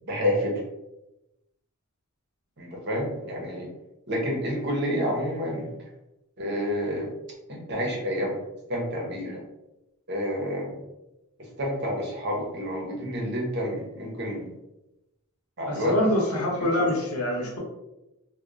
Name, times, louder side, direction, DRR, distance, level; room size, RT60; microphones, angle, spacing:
voice 1, 0.0-0.5 2.6-3.7 4.1-5.7 6.4-7.1 7.5-8.4 8.7-9.4 10.1-10.8 11.4-14.4 15.6-16.0 16.8-16.9, equal, 50° right, -1 dB, 0.8 m, -29 dB
voice 2, 15.7-17.6, left 1 dB, 85° left, -2 dB, 0.8 m, -25 dB
2.9 x 2.2 x 2.4 m, 0.92 s
head